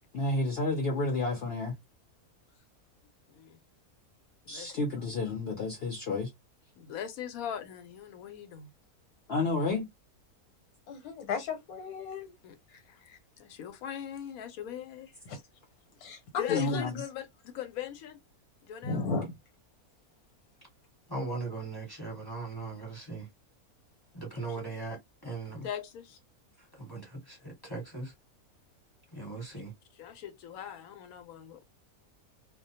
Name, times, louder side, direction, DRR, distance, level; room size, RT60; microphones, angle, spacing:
voice 1, 0.1-1.7 4.5-6.3 9.3-9.9 16.5-17.0, left 2 dB, 55° left, 0.8 m, -30 dB
voice 2, 3.3-3.6 4.4-5.1 6.8-8.7 12.4-12.6 12.9-13.0 13.4-15.1 16.3-18.2 18.6-19.1 24.4-24.7 25.6-26.2 29.9-31.6, left 9 dB, 75° left, 1.1 m, -40 dB
voice 3, 10.9-12.3 13.1-13.2 15.3-15.4 16.0-16.8 18.8-19.3, left 5 dB, 90° left, 1.3 m, -34 dB
voice 4, 21.1-23.3 24.1-25.0 25.2-25.7 26.8-28.1 29.1-29.7, right 3 dB, 15° left, 1.1 m, -38 dB
2.4 x 2.2 x 2.6 m
omnidirectional pair, 1.6 m